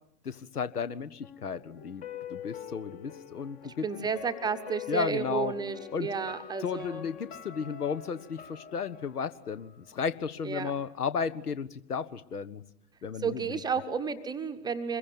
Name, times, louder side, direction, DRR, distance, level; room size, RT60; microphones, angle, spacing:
voice 1, 0.2-2.0 2.3-3.8 4.9-5.5 5.9-6.1 6.6-12.6 13.0-13.6, left 6 dB, 70° left, 14 dB, 1.6 m, -34 dB
sound 1, 1.2-10.2 10.5-10.6, left 8 dB, 15° left, 1.2 m, -45 dB
voice 2, 3.6-7.1 10.4-10.7 13.2-15.0, right 6 dB, 10° right, 8 dB, 1.0 m, -32 dB
26.0 x 22.0 x 9.3 m, 0.77 s
figure-of-eight pair, 115°, 48 cm